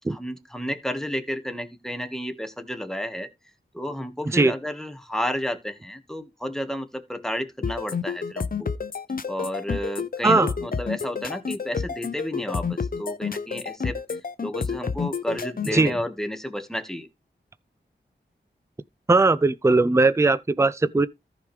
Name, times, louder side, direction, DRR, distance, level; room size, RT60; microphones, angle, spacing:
voice 1, 0.1-3.3 3.7-8.7 9.3-17.1, equal, ahead, 1.5 m, -32 dB
sound 1, 7.6-15.9, left 5 dB, 50° left, 0.7 m, -29 dB
voice 2, 19.1-21.1, right 3 dB, 15° right, 0.5 m, -19 dB
14.5 x 5.1 x 3.3 m
cardioid pair, 50°, 19 cm